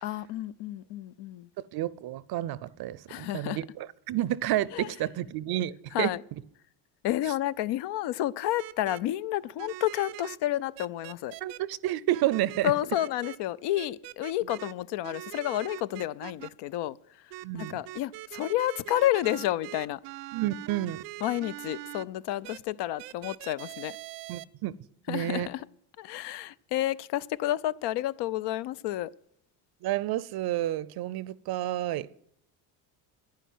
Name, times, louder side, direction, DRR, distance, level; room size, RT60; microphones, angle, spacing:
voice 1, 0.0-1.5 3.1-3.6 4.7-4.9 5.9-6.2 7.0-11.3 12.6-20.0 21.2-24.0 25.1-25.7 26.0-29.1, left 14 dB, 60° left, 0.6 m, -30 dB
voice 2, 1.7-6.1 11.4-12.7 17.4-17.8 20.3-21.0 24.3-24.7 25.1-25.5 29.8-32.1, right 14 dB, 50° right, 0.7 m, -30 dB
sound 1, 8.6-9.0 9.6-10.4 10.8-11.6 12.1-12.6 12.9-13.4 13.8-14.7 15.0-16.5 17.3-22.0 22.4-22.6 23.0-24.4, right 18 dB, 90° right, 0.7 m, -42 dB
10.5 x 10.5 x 9.2 m
supercardioid pair, 95°, 48 cm